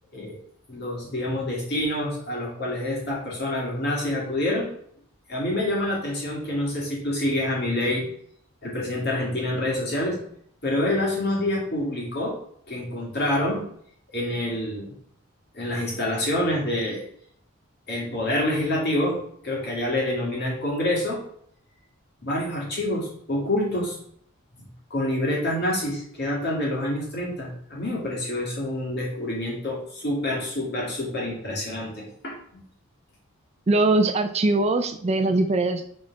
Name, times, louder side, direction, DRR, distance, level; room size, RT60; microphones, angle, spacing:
voice 1, 0.7-4.7 5.3-8.1 8.6-10.2 10.6-12.3 12.7-13.6 14.1-14.9 15.5-17.0 17.9-19.2 19.4-21.2 22.2-24.0 24.9-32.6, left 1 dB, 45° left, -3 dB, 2.5 m, -27 dB
voice 2, 33.7-35.9, right 2 dB, 30° right, 8 dB, 0.4 m, -21 dB
6.1 x 4.2 x 4.8 m, 0.65 s
head